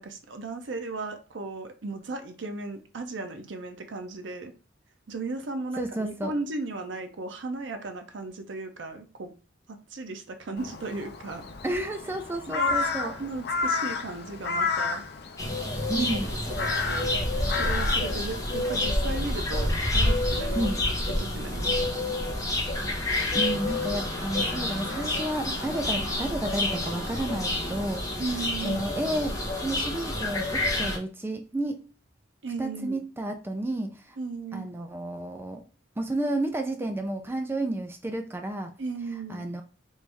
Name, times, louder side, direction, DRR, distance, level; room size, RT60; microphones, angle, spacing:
voice 1, 0.0-4.5 5.1-9.3 9.7-11.4 12.5-15.0 15.9-16.1 16.5-17.1 17.5-20.7 21.2-22.0 28.2-28.8 32.4-33.0 34.2-34.7 38.8-39.4, right 3 dB, 75° right, 0.6 m, -36 dB
voice 2, 5.8-6.3 11.6-13.1 15.9-16.3 20.5-20.8 23.3-28.0 28.6-31.8 32.6-34.2 34.5-35.6 36.0-38.7 39.3-39.6, right 1 dB, 10° right, 0.3 m, -31 dB
Crow, 10.6-19.1, left 4 dB, 60° left, 0.5 m, -32 dB
sound 1, 15.4-31.0, left 1 dB, 20° left, 0.8 m, -28 dB
3.1 x 2.6 x 3.3 m
head